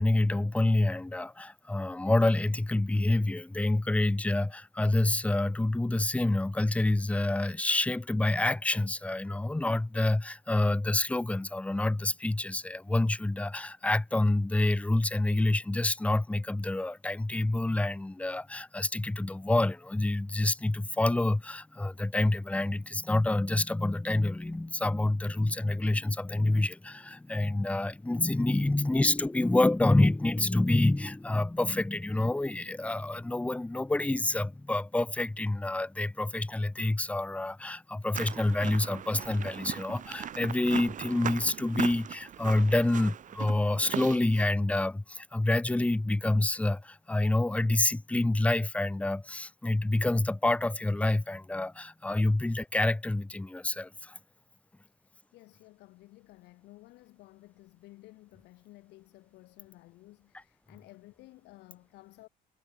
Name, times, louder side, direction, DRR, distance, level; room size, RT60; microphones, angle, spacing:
voice 1, 0.0-54.2, left 2 dB, 10° left, 0.8 m, -27 dB
sound 1, 38.1-44.5, right 9 dB, 50° right, 2.5 m, -39 dB
voice 2, 55.3-62.3, left 19 dB, 85° left, 6.9 m, -54 dB
cardioid pair, 110°, 17 cm